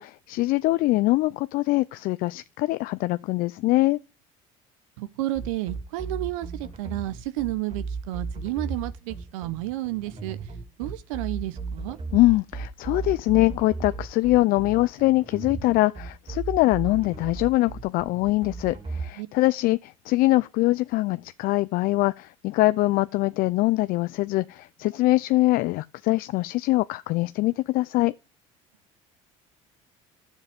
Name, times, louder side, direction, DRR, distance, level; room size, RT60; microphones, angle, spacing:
voice 1, 0.0-4.0 12.1-28.1, left 19 dB, 60° left, 0.5 m, -23 dB
voice 2, 5.0-10.4 10.8-12.0 19.2-19.3, right 17 dB, 80° right, 0.9 m, -31 dB
sound 1, 5.3-19.0, right 4 dB, 35° right, 3.2 m, -35 dB
11.5 x 7.4 x 3.5 m
hypercardioid pair, 75°, 17 cm